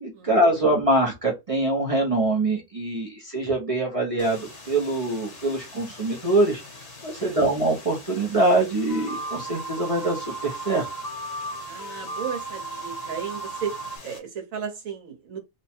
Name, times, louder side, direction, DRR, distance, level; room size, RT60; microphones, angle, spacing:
voice 1, 0.0-6.6 7.0-10.9, right 2 dB, 30° right, 0.7 m, -24 dB
sound 1, 4.2-14.2, left 3 dB, 50° left, 1.4 m, -44 dB
sound 2, 8.9-14.0, right 2 dB, 30° left, 0.9 m, -35 dB
voice 2, 11.6-13.7 14.0-15.4, right 7 dB, 60° right, 1.4 m, -34 dB
3.0 x 2.3 x 4.3 m
omnidirectional pair, 1.6 m